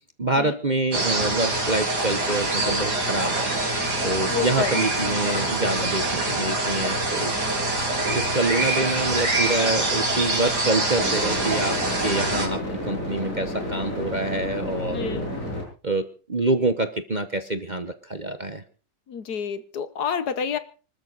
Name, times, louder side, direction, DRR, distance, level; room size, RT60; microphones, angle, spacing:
voice 1, 0.2-3.5 4.0-7.3 8.1-11.8 12.0-15.2 15.8-16.0 16.3-18.6, right 2 dB, 30° right, 1.0 m, -26 dB
sound 1, 0.9-12.5, right 2 dB, 65° right, 4.5 m, -25 dB
voice 2, 4.3-4.9 14.9-15.3 19.1-20.6, left 7 dB, 65° left, 1.5 m, -29 dB
sound 2, 6.2-6.3 11.0-15.6, left 1 dB, 45° left, 8.5 m, -31 dB
25.0 x 13.0 x 4.0 m
omnidirectional pair, 1.9 m